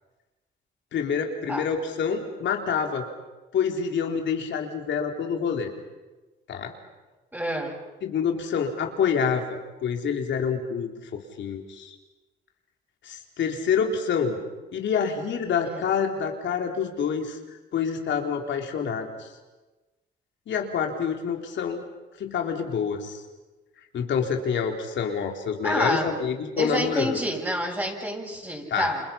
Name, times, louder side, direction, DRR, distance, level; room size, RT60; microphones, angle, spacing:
voice 1, 0.9-3.0 3.5-5.7 6.5-6.7 8.0-12.0 13.0-14.4 14.7-17.4 17.7-19.3 20.5-21.8 22.2-23.2 23.9-27.2 28.7-28.9, left 6 dB, 70° left, 3 dB, 3.8 m, -27 dB
voice 2, 7.3-7.8 15.6-15.8 25.6-26.1 26.6-29.0, equal, 10° right, -2 dB, 7.4 m, -28 dB
30.0 x 27.0 x 5.8 m, 1.2 s
cardioid pair, 90°, 20 cm